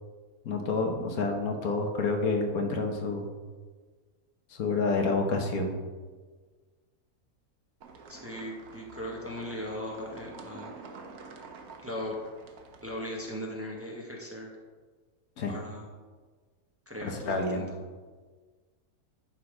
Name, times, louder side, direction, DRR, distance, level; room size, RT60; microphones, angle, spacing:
voice 1, 0.4-3.3 4.5-5.8 15.4-15.5 17.0-17.7, left 3 dB, 80° left, 4 dB, 1.5 m, -29 dB
sound 1, 7.8-13.3, right 4 dB, 80° right, 1.4 m, -48 dB
voice 2, 8.1-10.7 11.8-12.1 12.8-14.5 15.5-15.9 16.9-17.7, left 1 dB, 10° right, -2 dB, 1.0 m, -38 dB
10.5 x 4.0 x 4.9 m, 1.4 s
omnidirectional pair, 1.5 m